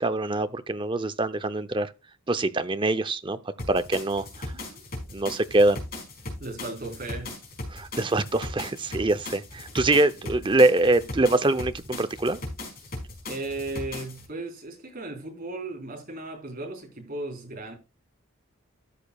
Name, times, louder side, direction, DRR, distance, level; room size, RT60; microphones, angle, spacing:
voice 1, 0.0-1.9 2.3-3.4 3.7-4.5 5.1-5.8 7.7-12.4, right 2 dB, 20° right, 0.6 m, -24 dB
sound 1, 3.6-14.2, left 1 dB, 45° left, 5.2 m, -38 dB
voice 2, 4.5-4.8 6.4-7.3 13.3-17.8, right 2 dB, 40° right, 4.0 m, -36 dB
13.5 x 8.4 x 2.3 m
head